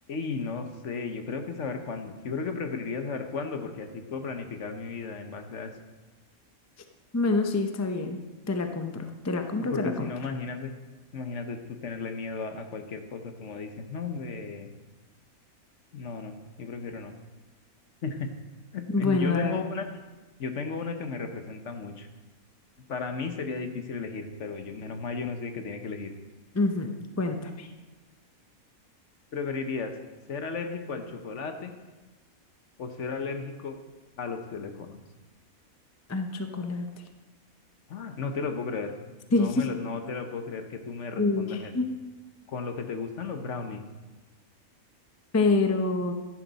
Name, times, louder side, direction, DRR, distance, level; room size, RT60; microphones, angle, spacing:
voice 1, 0.1-5.7 9.6-10.7 11.1-14.7 15.9-17.1 18.0-18.3 18.7-19.8 20.4-22.1 22.9-26.1 29.3-29.9 30.3-31.7 32.8-33.8 34.2-35.0 37.9-38.9 39.3-41.7 42.5-43.8, left 4 dB, 60° left, 6 dB, 1.2 m, -34 dB
voice 2, 7.1-8.2 8.5-10.1 18.9-19.6 26.5-26.9 27.2-27.7 36.1-36.9 39.3-39.7 41.2-42.0 45.3-46.1, left 3 dB, 20° left, 6 dB, 0.5 m, -26 dB
13.0 x 11.0 x 4.1 m, 1.2 s
omnidirectional pair, 1.5 m